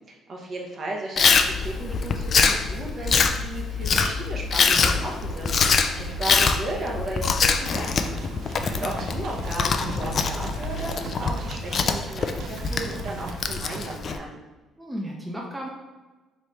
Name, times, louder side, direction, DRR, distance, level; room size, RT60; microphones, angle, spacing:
voice 1, 0.3-8.2 8.5-14.4, right 2 dB, 45° right, -1 dB, 0.9 m, -35 dB
Chewing mastication, 1.2-14.2, left 5 dB, 50° left, 0.3 m, -24 dB
sound 1, 1.3-12.0, left 3 dB, 65° left, 1.1 m, -36 dB
sound 2, 7.7-14.0, right 5 dB, 65° right, 0.3 m, -39 dB
voice 2, 8.6-9.0 14.8-15.7, equal, 10° right, -2 dB, 0.7 m, -34 dB
3.3 x 3.2 x 4.1 m, 1.2 s
cardioid pair, 95°, 0 cm